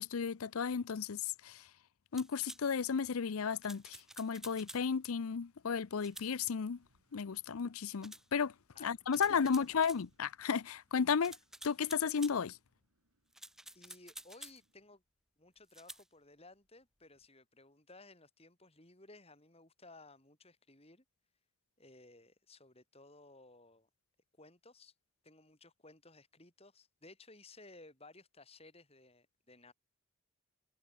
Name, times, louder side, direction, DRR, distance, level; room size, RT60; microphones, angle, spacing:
voice 1, 0.0-1.6 2.1-6.8 7.1-8.5 8.8-11.4 11.6-12.6, left 6 dB, 80° left, 0.6 m, -34 dB
sound 1, 2.2-2.6 3.6-4.9 6.0-6.3 8.0-8.3 9.1-10.0 11.2-12.4 13.3-14.6 15.7-16.0, right 1 dB, ahead, 0.5 m, -51 dB
Wind, 5.0-15.0, right 1 dB, 80° right, 5.0 m, -75 dB
voice 2, 9.3-9.9 13.7-15.0 15.4-21.0 21.8-23.9 24.4-24.9 25.2-29.7, left 2 dB, 25° left, 6.1 m, -58 dB
head